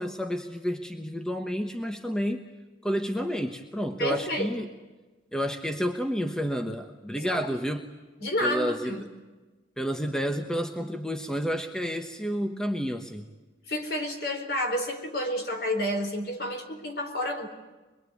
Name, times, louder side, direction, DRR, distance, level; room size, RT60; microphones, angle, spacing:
voice 1, 0.0-2.5 2.8-4.7 5.3-7.9 8.4-9.0 9.8-13.2, equal, 5° left, 6 dB, 1.1 m, -30 dB
voice 2, 4.0-4.7 7.1-7.6 8.2-9.0 13.7-17.5, left 1 dB, 55° left, 5 dB, 4.0 m, -30 dB
24.0 x 22.5 x 9.5 m, 1.2 s
head